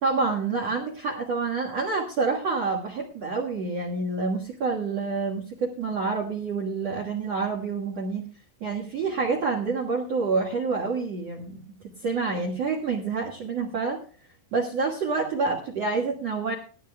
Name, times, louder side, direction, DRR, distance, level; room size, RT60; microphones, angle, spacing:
voice 1, 0.0-8.3 8.6-11.6 12.0-14.0 14.5-16.5, right 4 dB, 65° right, 1 dB, 1.6 m, -27 dB
18.5 x 13.0 x 2.2 m, 0.39 s
omnidirectional pair, 5.3 m